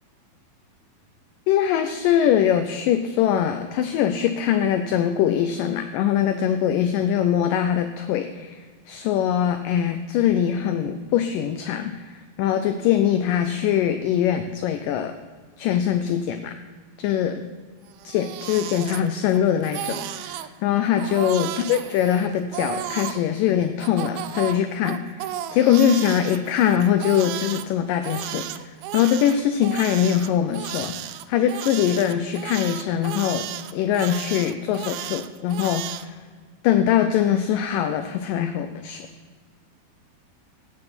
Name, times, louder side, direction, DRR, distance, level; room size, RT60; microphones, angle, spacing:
voice 1, 1.5-15.1 15.6-16.5 17.0-17.4 18.0-31.0 31.3-33.4 33.7-36.2 36.6-39.1, left 9 dB, 80° left, 8 dB, 2.0 m, -22 dB
Crying sobbing, 17.9-19.4 19.6-20.5 21.0-23.2 23.8-27.7 28.0-36.1, right 12 dB, 80° right, 2.4 m, -33 dB
17.0 x 8.6 x 4.3 m, 1.5 s
omnidirectional pair, 4.4 m